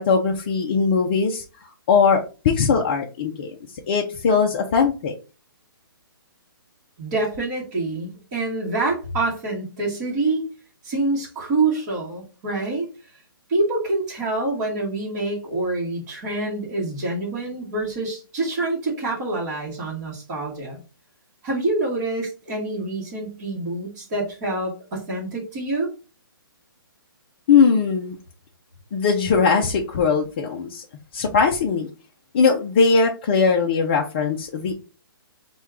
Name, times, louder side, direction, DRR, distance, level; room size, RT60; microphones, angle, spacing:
voice 1, 0.0-1.4 1.9-3.5 3.9-5.1 27.5-28.2 28.9-30.8 31.1-31.9 32.3-34.7, left 5 dB, 25° left, 1 dB, 0.4 m, -20 dB
voice 2, 7.0-10.4 10.8-12.9 13.5-20.8 21.4-25.9, right 2 dB, 25° right, -6 dB, 1.1 m, -26 dB
4.4 x 2.2 x 3.5 m, 0.33 s
hypercardioid pair, 165°, 12 cm